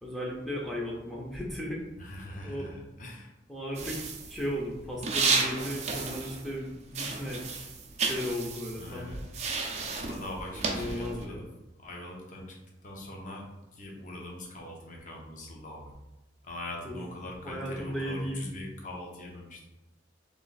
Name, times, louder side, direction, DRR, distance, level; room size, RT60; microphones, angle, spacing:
voice 1, 0.0-1.8 2.4-2.7 3.5-4.0 4.3-7.4 8.0-9.1 10.6-11.5 16.8-17.0 17.4-18.4, equal, ahead, -4 dB, 0.7 m, -35 dB
voice 2, 2.0-3.3 8.8-9.2 10.1-11.5 11.8-12.6 12.8-15.9 16.4-19.6, left 1 dB, 45° left, -1 dB, 0.8 m, -42 dB
sound 1, 3.8-6.6 6.9-11.2, right 4 dB, 35° right, 0.5 m, -32 dB
3.2 x 3.1 x 4.0 m, 0.99 s
head